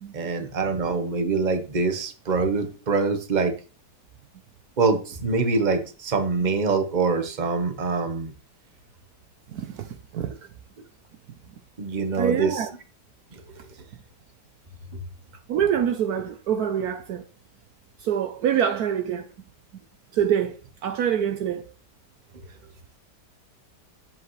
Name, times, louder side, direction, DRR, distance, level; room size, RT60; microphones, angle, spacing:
voice 1, 0.1-3.5 4.8-8.3 11.8-12.6, right 4 dB, 30° right, 1.2 m, -24 dB
voice 2, 9.5-9.9 10.1-10.3 12.2-12.7 15.5-17.2 18.0-19.3 20.1-20.5 20.8-21.6, right 9 dB, 70° right, 1.1 m, -25 dB
10.5 x 7.8 x 3.2 m
omnidirectional pair, 1.8 m